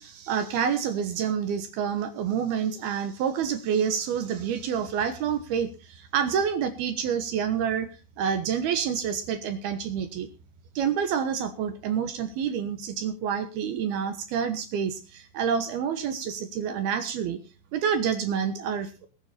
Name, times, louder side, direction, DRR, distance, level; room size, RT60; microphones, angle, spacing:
voice 1, 0.0-7.9 8.2-10.3 10.8-17.4 17.7-19.1, right 7 dB, 70° right, 9 dB, 2.6 m, -28 dB
20.0 x 9.6 x 4.2 m, 0.32 s
omnidirectional pair, 5.6 m